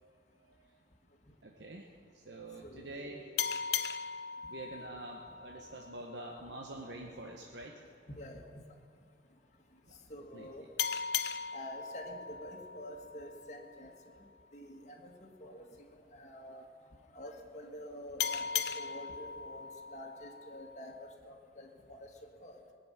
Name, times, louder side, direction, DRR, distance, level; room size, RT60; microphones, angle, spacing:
voice 1, 0.0-0.6 1.4-1.9 2.1-3.3 4.5-7.7 10.3-10.5, right 1 dB, 70° right, 0 dB, 1.2 m, -46 dB
voice 2, 2.6-3.3 8.1-8.4 10.1-10.6 11.5-14.2 14.5-15.7 15.9-16.6 17.1-22.1 22.4-22.6, equal, 40° left, 0 dB, 1.8 m, -48 dB
sound 1, 3.4-6.6 10.8-14.0 18.2-21.1, left 7 dB, 60° left, 0.5 m, -38 dB
19.5 x 7.1 x 9.7 m, 2.3 s
head